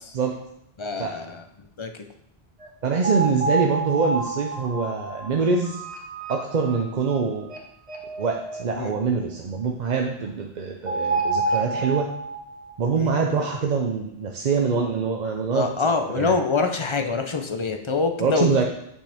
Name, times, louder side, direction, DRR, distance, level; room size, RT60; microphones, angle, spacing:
voice 1, 0.8-1.4 1.8-1.9 8.8-8.9 13.0-13.1 15.5-18.6, left 4 dB, 35° left, 6 dB, 0.5 m, -25 dB
sound 1, 2.6-2.7 3.0-6.8 7.1-7.2 7.5-7.6 7.9-8.6 10.9-12.7, right 3 dB, 35° right, 1.1 m, -28 dB
voice 2, 2.8-5.8 6.3-7.5 8.2-12.1 12.8-15.7 16.2-16.4 18.2-18.7, right 5 dB, 50° right, 1 dB, 0.7 m, -24 dB
8.5 x 5.4 x 3.5 m, 0.77 s
omnidirectional pair, 1.1 m